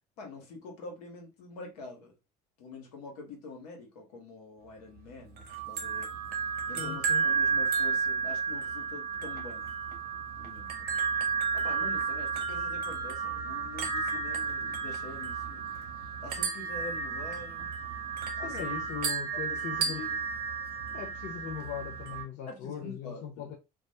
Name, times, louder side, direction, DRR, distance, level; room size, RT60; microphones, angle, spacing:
voice 1, 0.2-2.1 2.6-6.1 6.7-9.7 10.4-10.8 11.5-15.8 16.2-17.7 18.4-18.8 19.5-20.1 22.5-23.5, left 3 dB, 85° left, 0.9 m, -45 dB
sound 1, 5.4-22.2, right 5 dB, 50° right, 0.7 m, -32 dB
voice 2, 6.8-7.2 18.4-20.0 20.9-23.5, left 8 dB, 65° left, 0.5 m, -39 dB
2.3 x 2.0 x 2.7 m
hypercardioid pair, 70°, 20 cm